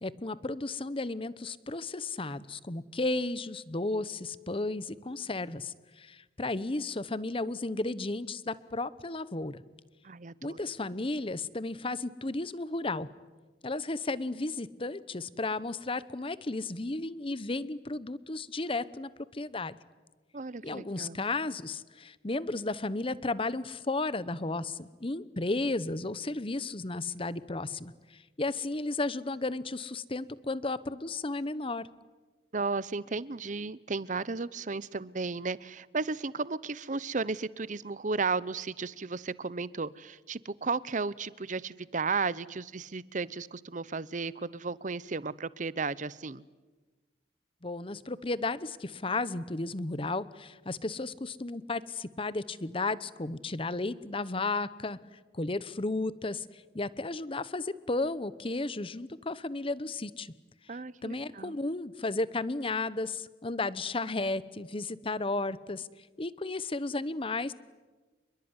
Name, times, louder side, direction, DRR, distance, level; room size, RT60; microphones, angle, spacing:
voice 1, 0.0-9.6 10.4-13.1 13.6-19.8 20.6-31.9 47.6-60.3 61.0-65.9 66.2-67.5, left 2 dB, 30° left, 17 dB, 1.0 m, -34 dB
voice 2, 10.0-10.6 20.3-21.2 32.5-46.4 60.7-61.5, right 4 dB, 45° right, 19 dB, 0.8 m, -34 dB
27.5 x 22.0 x 9.7 m, 1.3 s
head